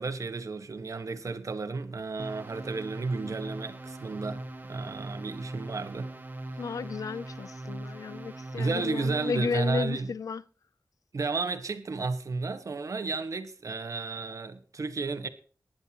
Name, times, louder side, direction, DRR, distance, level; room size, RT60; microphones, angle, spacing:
voice 1, 0.0-6.1 6.5-6.6 8.6-10.1 11.1-15.3, right 3 dB, 65° right, 1.5 m, -33 dB
sound 1, 2.2-9.8, right 2 dB, 35° right, 1.8 m, -41 dB
voice 2, 6.6-10.4, left 5 dB, 90° left, 0.5 m, -33 dB
19.5 x 10.5 x 3.0 m
wide cardioid pair, 70°, 6 cm